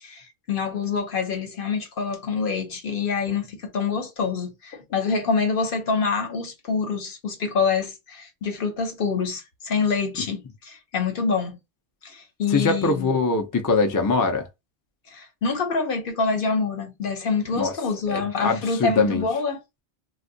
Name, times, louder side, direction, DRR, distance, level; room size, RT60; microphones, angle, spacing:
voice 1, 0.0-11.6 12.0-13.1 15.1-19.6, left 5 dB, 55° left, 0.9 m, -26 dB
voice 2, 12.5-14.5 17.5-17.7 18.1-19.2, left 4 dB, 30° left, 0.3 m, -22 dB
2.6 x 2.3 x 3.7 m
omnidirectional pair, 1.1 m